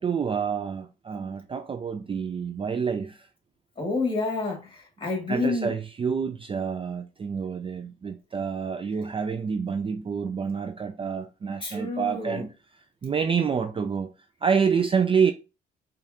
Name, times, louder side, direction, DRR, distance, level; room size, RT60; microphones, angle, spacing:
voice 1, 0.0-3.3 5.3-12.5 13.0-14.1 14.4-15.3, right 6 dB, 25° right, 0.4 m, -27 dB
voice 2, 3.8-5.7 11.6-12.5, left 3 dB, 25° left, 1.8 m, -29 dB
4.8 x 2.4 x 2.8 m
cardioid pair, 90°, 20 cm